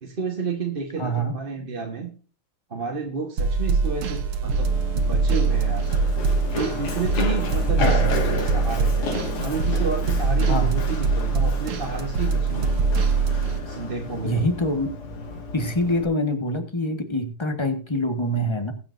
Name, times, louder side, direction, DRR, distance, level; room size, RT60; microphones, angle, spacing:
voice 1, 0.0-2.1 2.7-6.1 6.5-9.1 9.4-12.8 13.7-14.5, right 4 dB, 30° right, 2 dB, 1.3 m, -31 dB
voice 2, 1.0-1.3 7.8-8.1 10.5-10.7 14.2-14.9 15.5-18.7, equal, 15° left, 7 dB, 1.1 m, -25 dB
sound 1, 3.4-13.6, right 4 dB, 80° right, 2.1 m, -23 dB
Run, 4.5-16.0, left 2 dB, 85° left, 2.9 m, -32 dB
22.0 x 7.6 x 2.6 m, 0.39 s
omnidirectional pair, 2.3 m